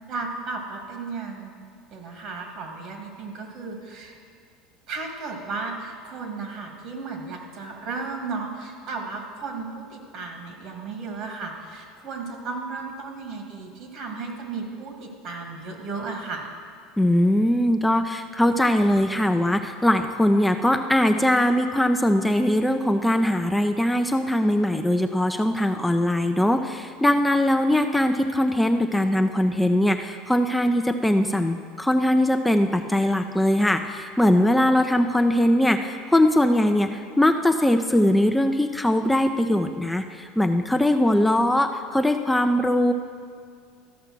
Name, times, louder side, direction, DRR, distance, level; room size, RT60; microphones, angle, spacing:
voice 1, 0.1-1.5 1.9-4.2 4.9-16.5, right 4 dB, 55° right, 2 dB, 2.0 m, -34 dB
voice 2, 17.0-42.9, left 1 dB, 5° left, 6 dB, 0.4 m, -21 dB
13.5 x 5.5 x 6.1 m, 2.1 s
supercardioid pair, 100°, 0 cm